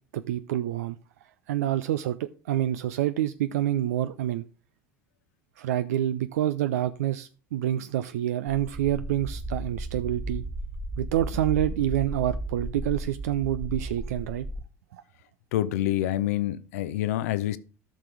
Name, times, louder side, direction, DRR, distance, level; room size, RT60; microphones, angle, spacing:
voice 1, 0.1-1.0 1.5-4.4 5.6-10.4 11.0-14.5 14.9-15.0, right 12 dB, 75° right, 0.4 m, -27 dB
sound 1, 8.7-14.6, right 1 dB, 35° right, 1.4 m, -35 dB
voice 2, 15.5-17.6, left 13 dB, 70° left, 0.6 m, -27 dB
13.5 x 5.9 x 3.3 m
figure-of-eight pair, 65°, 8 cm